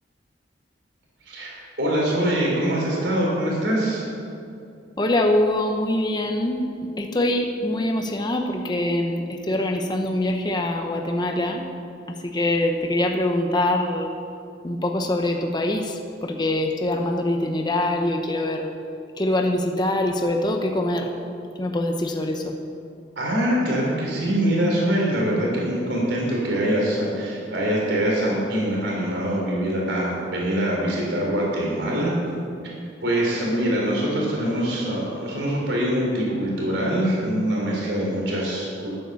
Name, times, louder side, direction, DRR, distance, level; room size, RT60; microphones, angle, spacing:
voice 1, 1.3-4.0 23.2-32.1 33.0-38.9, right 1 dB, 75° right, -4 dB, 4.0 m, -24 dB
voice 2, 5.0-6.7 7.0-11.6 12.1-14.1 14.6-18.7 19.2-21.1 21.6-22.6, left 1 dB, 25° left, 3 dB, 0.8 m, -24 dB
11.0 x 10.5 x 7.0 m, 2.5 s
head